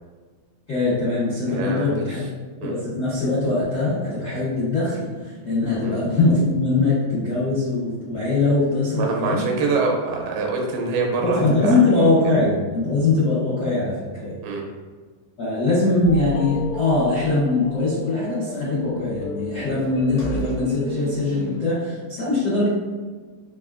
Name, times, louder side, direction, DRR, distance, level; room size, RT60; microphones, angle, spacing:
voice 1, 0.7-2.2 2.6-9.5 11.2-14.3 15.4-22.7, left 2 dB, 85° left, -13 dB, 0.8 m, -22 dB
voice 2, 1.5-2.1 2.6-2.7 5.8-6.0 8.9-12.1 14.4-14.6, right 4 dB, 90° right, 1 dB, 2.6 m, -25 dB
sound 1, 16.0-21.6, left 2 dB, 70° left, 2.1 m, -33 dB
5.5 x 2.3 x 2.4 m, 1.4 s
omnidirectional pair, 4.2 m